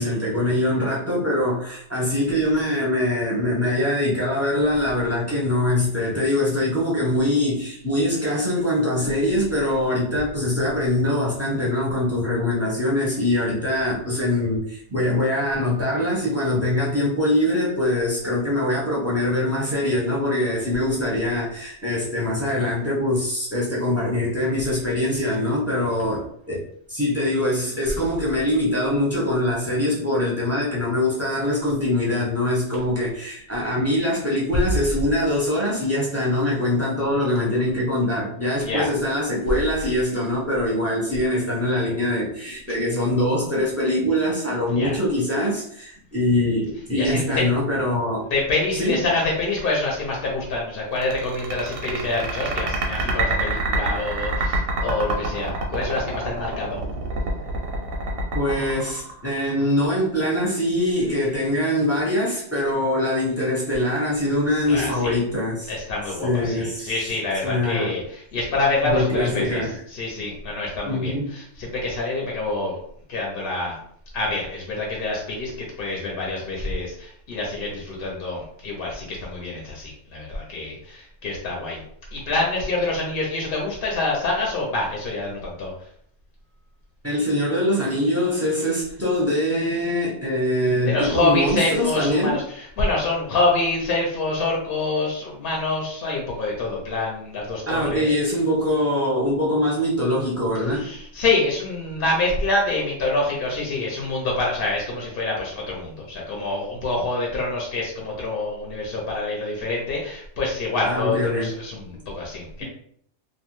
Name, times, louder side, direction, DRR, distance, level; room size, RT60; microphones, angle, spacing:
voice 1, 0.0-26.6 26.9-48.3 48.8-49.1 58.3-65.7 66.2-66.9 67.4-67.9 68.8-69.8 70.9-71.3 87.0-92.4 97.7-100.9 110.8-111.5, left 1 dB, 15° right, -6 dB, 0.5 m, -23 dB
voice 2, 38.6-38.9 44.7-45.0 47.0-47.4 48.3-56.8 64.7-65.2 65.7-72.8 73.1-73.8 74.1-81.8 82.1-85.7 90.9-98.1 100.7-112.6, left 2 dB, 60° left, -2 dB, 0.7 m, -26 dB
sound 1, 51.0-59.6, right 2 dB, 90° right, 1.1 m, -26 dB
2.5 x 2.1 x 3.0 m, 0.66 s
omnidirectional pair, 1.3 m